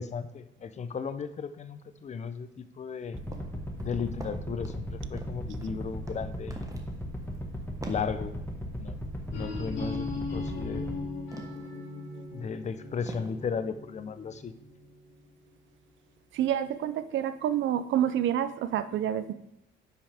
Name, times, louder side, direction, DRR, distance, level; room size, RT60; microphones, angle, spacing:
voice 1, 0.0-3.2 3.8-6.7 7.9-8.4 8.7-9.0 9.3-10.9 12.3-14.5, left 6 dB, 35° left, 11 dB, 0.6 m, -35 dB
sound 1, 3.1-11.0, equal, 10° left, 1.5 m, -36 dB
sound 2, 3.3-3.5 3.8-4.8 5.2-5.8 6.1-6.2 6.5-6.9 7.2-7.4 7.8-8.1 10.4-10.6 11.3-11.7 12.2-12.3 13.1-13.3, right 2 dB, 15° right, 1.3 m, -42 dB
sound 3, 9.3-15.1, left 3 dB, 70° left, 2.8 m, -39 dB
voice 2, 16.3-19.3, right 10 dB, 75° right, 12 dB, 0.5 m, -28 dB
10.0 x 5.6 x 3.5 m, 0.86 s
cardioid pair, 90°, 20 cm